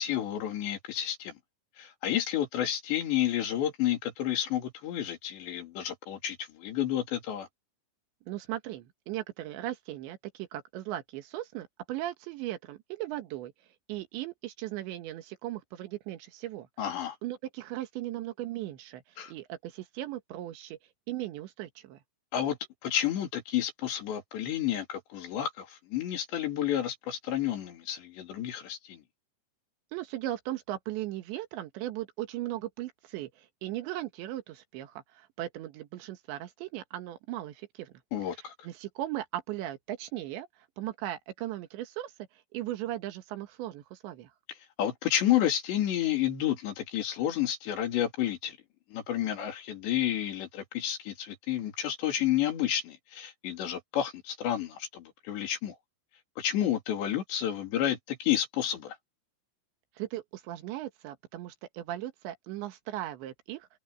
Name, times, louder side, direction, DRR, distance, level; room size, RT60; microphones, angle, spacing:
voice 1, 0.0-1.3 1.8-7.5 16.8-17.2 19.2-19.3 22.3-22.6 22.8-29.0 38.1-38.5 44.8-48.6 48.9-55.7 56.4-59.0, left 11 dB, 80° left, 5.0 m, -30 dB
voice 2, 8.3-13.5 13.9-16.7 16.9-19.0 19.3-20.8 21.1-22.0 29.9-37.9 38.6-40.5 40.8-42.1 42.5-44.3 60.0-63.7, right 14 dB, 85° right, 3.8 m, -37 dB
open air
omnidirectional pair, 5.0 m